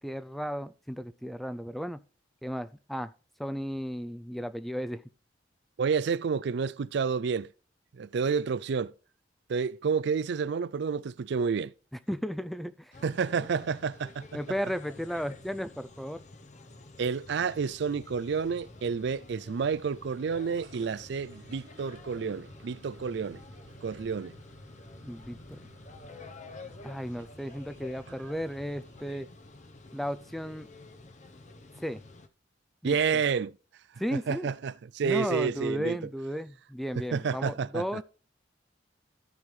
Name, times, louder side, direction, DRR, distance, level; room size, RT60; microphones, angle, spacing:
voice 1, 0.0-2.0 2.4-3.1 3.4-5.0 12.1-12.9 14.3-16.2 25.0-25.6 26.8-29.3 29.9-30.7 31.8-32.0 32.8-33.0 34.0-34.5 35.0-38.0, equal, ahead, 0.4 m, -34 dB
voice 2, 5.8-7.5 7.9-8.9 9.5-11.7 13.0-14.2 17.0-23.4 23.8-24.4 32.8-33.5 34.1-36.0 37.0-38.0, right 6 dB, 65° right, 0.4 m, -30 dB
sound 1, 12.9-32.3, left 2 dB, 40° left, 0.8 m, -50 dB
sound 2, 17.2-29.1, equal, 85° left, 3.4 m, -58 dB
sound 3, 20.6-29.3, right 2 dB, 90° right, 1.1 m, -56 dB
13.5 x 5.5 x 3.2 m
head